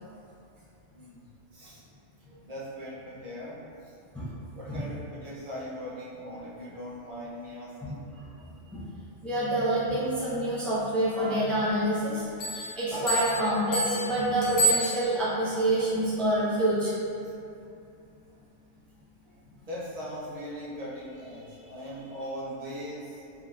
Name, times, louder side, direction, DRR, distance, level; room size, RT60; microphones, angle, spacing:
voice 1, 1.5-1.8 2.5-4.0 4.6-8.0 17.2-17.3 19.6-23.5, equal, 60° right, -7 dB, 0.4 m, -40 dB
voice 2, 8.2-8.8 9.2-17.0, right 1 dB, ahead, -10 dB, 0.4 m, -27 dB
Bell, 12.4-15.5, right 1 dB, 75° left, 1.1 m, -30 dB
3.6 x 2.6 x 2.3 m, 2.5 s
omnidirectional pair, 1.3 m